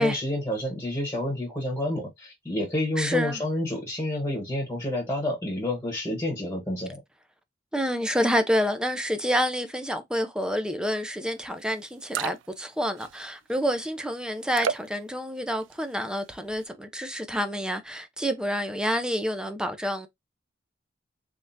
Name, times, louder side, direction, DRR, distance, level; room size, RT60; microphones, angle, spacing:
voice 1, 0.0-7.0, left 1 dB, 15° left, 1.1 m, -29 dB
voice 2, 3.0-3.4 7.7-20.1, equal, 5° right, 0.5 m, -28 dB
sound 1, 11.5-11.6 11.9-12.7 13.0-13.5 14.5-15.0 15.5-16.0 16.4-16.6, right 7 dB, 85° right, 0.3 m, -32 dB
3.6 x 3.3 x 2.6 m
head